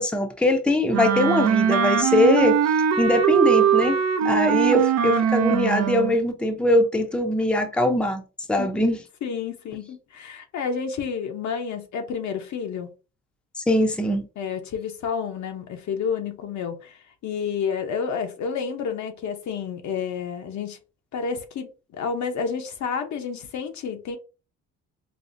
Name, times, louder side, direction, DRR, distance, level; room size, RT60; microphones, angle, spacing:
voice 1, 0.0-8.2 8.5-9.0 13.6-14.2, left 1 dB, 5° left, 0.6 m, -21 dB
Wind instrument woodwind instrument, 0.9-6.2, right 8 dB, 60° right, 0.5 m, -21 dB
voice 2, 4.2-4.6 8.6-8.8 9.2-12.9 14.4-20.8 21.1-24.2, left 6 dB, 65° left, 0.8 m, -30 dB
5.2 x 2.0 x 2.5 m
cardioid pair, 90°, 30 cm